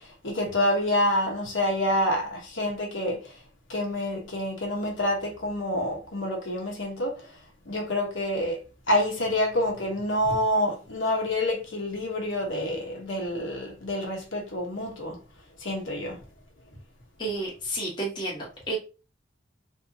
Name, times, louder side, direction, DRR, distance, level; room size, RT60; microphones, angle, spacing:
voice 1, 0.0-3.2 3.7-7.2 7.7-8.6 8.9-15.2 15.6-16.2, left 1 dB, 80° left, 1.1 m, -27 dB
voice 2, 17.2-18.8, right 2 dB, 25° left, 1.1 m, -31 dB
3.4 x 2.8 x 2.7 m
head